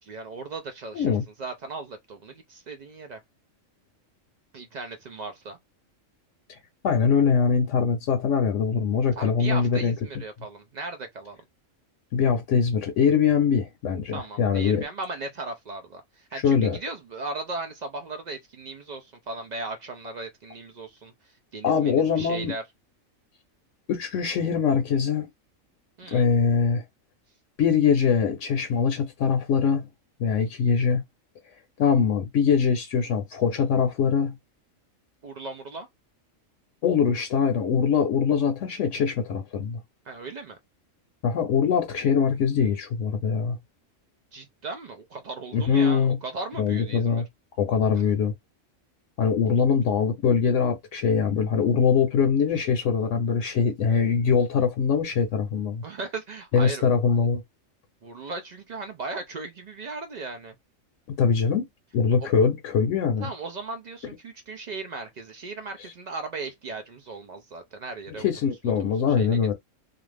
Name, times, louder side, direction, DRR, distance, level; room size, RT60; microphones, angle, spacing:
voice 1, 0.1-3.2 4.5-5.6 9.2-11.4 14.1-22.6 26.0-26.3 35.2-35.9 40.1-40.6 44.3-47.2 55.8-56.8 58.0-60.5 62.2-62.3 63.2-68.3 68.8-69.4, right 3 dB, 85° right, 0.3 m, -37 dB
voice 2, 6.8-9.9 12.1-14.8 16.3-16.8 21.6-22.5 23.9-25.3 26.1-26.8 27.6-29.9 30.2-31.0 31.8-34.3 36.8-39.8 41.2-43.6 45.5-46.2 46.6-47.3 47.6-48.3 49.2-55.8 56.5-57.4 61.2-61.7 61.9-63.3 68.2-69.5, left 6 dB, 70° left, 0.9 m, -23 dB
2.5 x 2.4 x 3.2 m
omnidirectional pair, 1.4 m